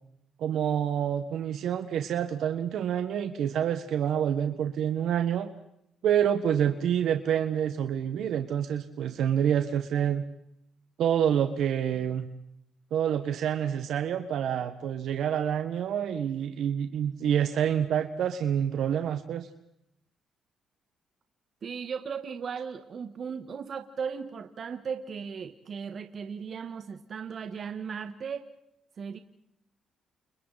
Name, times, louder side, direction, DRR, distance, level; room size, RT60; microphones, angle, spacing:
voice 1, 0.4-5.5 6.0-10.2 11.0-12.3 12.9-19.5, right 9 dB, 75° right, 7 dB, 1.5 m, -27 dB
voice 2, 21.6-28.5 29.0-29.2, right 6 dB, 50° right, 7 dB, 1.6 m, -36 dB
30.0 x 29.5 x 4.2 m, 0.80 s
cardioid pair, 90°, 0 cm